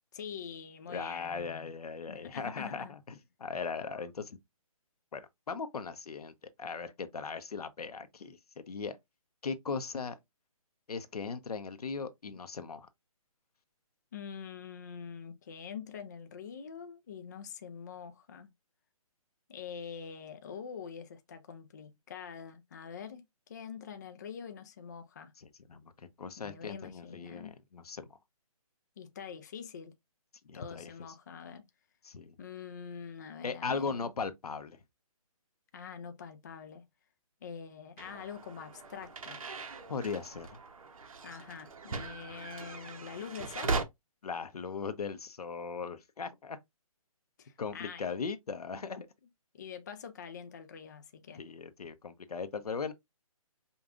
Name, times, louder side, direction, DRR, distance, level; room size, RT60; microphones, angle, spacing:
voice 1, 0.1-1.7 2.1-2.9 14.1-18.5 19.5-25.3 26.4-27.6 29.0-29.9 30.5-31.6 32.4-34.1 35.7-36.8 37.4-39.4 41.2-43.8 47.4-48.1 49.5-51.4, left 7 dB, 30° left, 0.4 m, -45 dB
voice 2, 0.9-4.4 5.1-6.3 6.6-9.0 9.4-10.1 10.9-12.9 25.4-25.9 26.2-28.2 30.5-30.9 32.0-32.4 33.4-34.8 39.9-40.6 44.2-46.6 47.6-49.1 51.4-52.9, left 5 dB, 90° left, 0.7 m, -38 dB
sound 1, 38.0-43.8, right 4 dB, 65° right, 0.8 m, -39 dB
5.2 x 2.3 x 2.4 m
hypercardioid pair, 160°, 19 cm